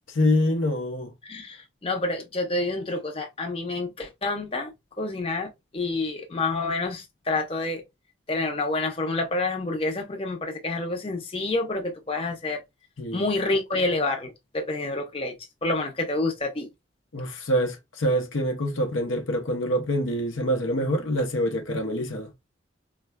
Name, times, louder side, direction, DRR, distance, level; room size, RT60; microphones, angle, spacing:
voice 1, 0.1-1.1 13.0-13.3 17.1-22.3, equal, 90° left, 0.7 m, -25 dB
voice 2, 1.2-4.7 5.0-7.8 8.3-12.6 13.1-15.3 15.6-16.7, left 2 dB, 30° left, 0.6 m, -28 dB
4.3 x 2.2 x 2.2 m
head